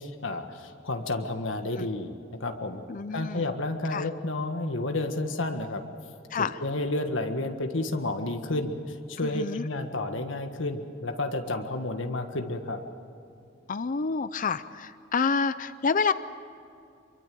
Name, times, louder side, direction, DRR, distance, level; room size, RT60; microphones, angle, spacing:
voice 1, 0.0-2.1 2.4-2.8 3.1-5.8 6.4-12.8, left 2 dB, 75° left, 6 dB, 1.6 m, -31 dB
voice 2, 2.9-3.5 3.9-4.1 6.3-6.6 9.2-9.6 13.7-16.1, left 5 dB, 45° left, 13 dB, 0.6 m, -28 dB
26.0 x 23.5 x 7.7 m, 2.6 s
head